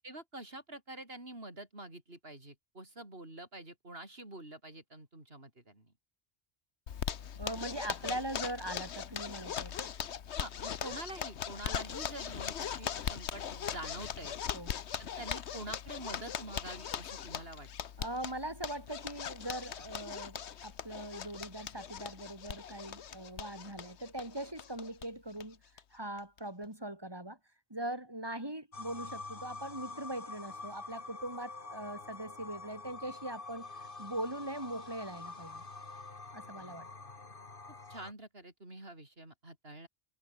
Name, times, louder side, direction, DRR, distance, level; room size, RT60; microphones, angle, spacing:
voice 1, 0.0-5.9 10.4-14.4 15.0-17.7 36.5-36.8 37.9-39.9, right 1 dB, 60° right, 6.6 m, -46 dB
Zipper (clothing), 6.9-25.1 25.4-25.5 25.8-25.9 26.2-26.6, left 8 dB, 75° left, 1.2 m, -40 dB
voice 2, 7.3-9.9 14.5-14.7 18.0-25.6 25.9-27.4 27.7-33.7 34.0-35.6 36.3-36.9, right 1 dB, 20° right, 4.9 m, -41 dB
sound 1, 28.7-38.1, left 3 dB, 50° left, 2.4 m, -46 dB
omnidirectional pair, 1.2 m